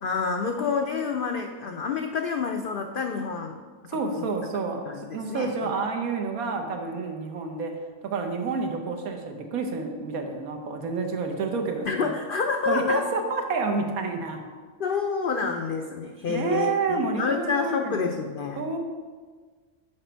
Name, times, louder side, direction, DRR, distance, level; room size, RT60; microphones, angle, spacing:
voice 1, 0.0-3.7 4.9-5.7 11.8-13.0 14.8-18.6, left 5 dB, 75° left, 4 dB, 0.5 m, -28 dB
voice 2, 3.9-7.7 8.0-12.1 12.7-14.4 16.3-17.9 18.6-18.8, right 4 dB, 90° right, 4 dB, 1.3 m, -29 dB
7.5 x 5.0 x 4.5 m, 1.5 s
omnidirectional pair, 1.5 m